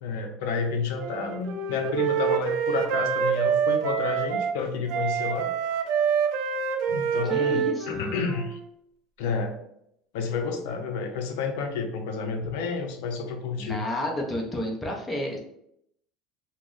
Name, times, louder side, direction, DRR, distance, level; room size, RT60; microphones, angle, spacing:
voice 1, 0.0-5.5 6.9-8.6 9.2-9.6 10.1-13.8, left 4 dB, 80° left, 5 dB, 0.5 m, -30 dB
Wind instrument woodwind instrument, 1.0-4.5 4.9-8.6, right 7 dB, 55° right, 0.3 m, -26 dB
voice 2, 7.3-8.2 12.4-12.5 13.6-15.4, left 1 dB, 5° left, -1 dB, 0.5 m, -31 dB
2.9 x 2.0 x 3.7 m, 0.75 s
cardioid pair, 165°, 0 cm